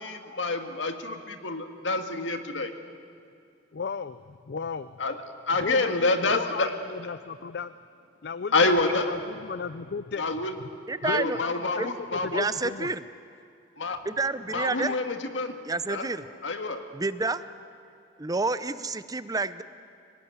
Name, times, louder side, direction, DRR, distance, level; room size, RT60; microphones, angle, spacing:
voice 1, 0.0-2.7 5.0-5.2 5.5-6.7 8.5-9.1 10.2-10.5 11.0-12.4 13.8-14.0 14.5-15.6 15.9-16.1 16.4-16.8, left 3 dB, 85° left, 6 dB, 1.9 m, -27 dB
voice 2, 3.7-5.0 5.6-7.7 8.2-10.2 10.6-10.7 11.0-12.9, left 5 dB, 60° left, 14 dB, 0.5 m, -35 dB
voice 3, 10.9-11.4 11.8-11.9 12.3-13.0 14.0-15.0 15.7-16.3 16.9-17.4 18.2-19.6, right 3 dB, 20° right, 13 dB, 0.6 m, -29 dB
24.5 x 19.0 x 9.5 m, 2.4 s
head